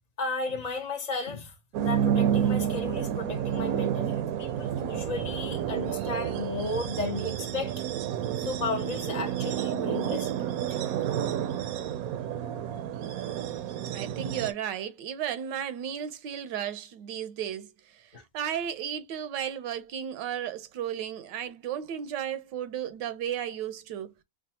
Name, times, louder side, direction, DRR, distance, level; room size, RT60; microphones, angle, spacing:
voice 1, 0.2-7.8 8.4-10.3 10.7-10.8 18.1-18.2, left 3 dB, 65° left, 0.4 m, -34 dB
sound 1, 1.7-14.5, right 9 dB, 70° right, 0.9 m, -30 dB
voice 2, 13.9-24.1, right 9 dB, 85° right, 1.4 m, -34 dB
5.0 x 2.3 x 2.8 m
omnidirectional pair, 1.8 m